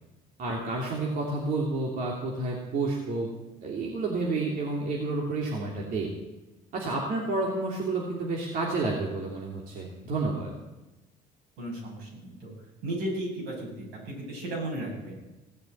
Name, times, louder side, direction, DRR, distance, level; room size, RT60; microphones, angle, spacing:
voice 1, 0.4-3.3 3.6-6.1 6.7-10.5, right 3 dB, 55° right, -2 dB, 2.9 m, -30 dB
voice 2, 11.6-12.5 12.8-15.2, right 1 dB, 85° right, -2 dB, 6.9 m, -35 dB
17.0 x 6.8 x 9.0 m, 1.0 s
cardioid pair, 105°, 17 cm